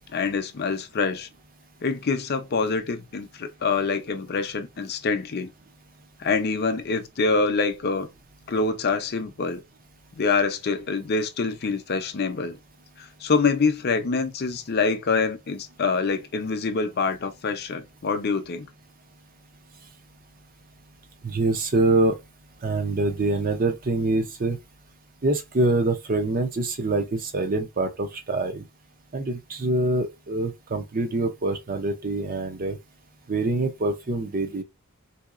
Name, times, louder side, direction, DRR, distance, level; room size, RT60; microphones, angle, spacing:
voice 1, 0.1-1.3 1.8-5.5 6.2-8.1 8.5-9.6 10.1-12.6 13.0-18.7, left 4 dB, 45° left, 0.5 m, -25 dB
voice 2, 21.2-22.2 22.6-24.6 25.2-28.6 29.1-32.8 33.3-34.6, right 2 dB, 40° right, 0.5 m, -25 dB
3.8 x 2.8 x 2.4 m
head